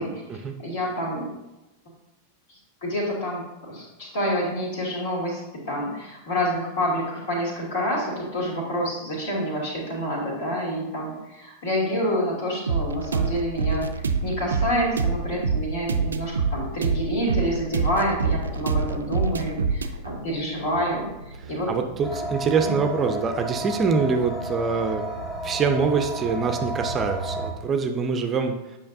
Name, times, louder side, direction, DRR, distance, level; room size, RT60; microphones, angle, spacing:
voice 1, 0.6-1.3 2.5-13.9 14.2-21.7 22.6-22.7, equal, 55° left, -3 dB, 2.5 m, -28 dB
sound 1, 12.7-22.3, right 4 dB, 70° right, 0.5 m, -27 dB
voice 2, 21.7-25.0 25.4-28.5, right 5 dB, 25° right, 5 dB, 0.6 m, -24 dB
sound 2, 22.0-27.5, right 1 dB, 25° left, 1.3 m, -32 dB
8.6 x 5.7 x 2.6 m, 1.0 s
figure-of-eight pair, 90°, 0 cm